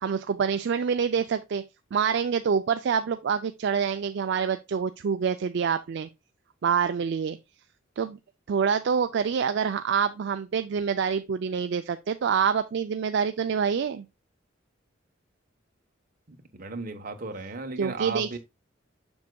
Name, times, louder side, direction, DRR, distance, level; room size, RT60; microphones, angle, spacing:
voice 1, 0.0-1.6 1.9-6.1 6.6-7.4 8.0-8.2 8.5-14.1 17.8-18.4, right 6 dB, 60° right, 0.4 m, -26 dB
voice 2, 16.5-18.4, right 3 dB, 45° right, 1.0 m, -35 dB
7.1 x 6.2 x 2.2 m
head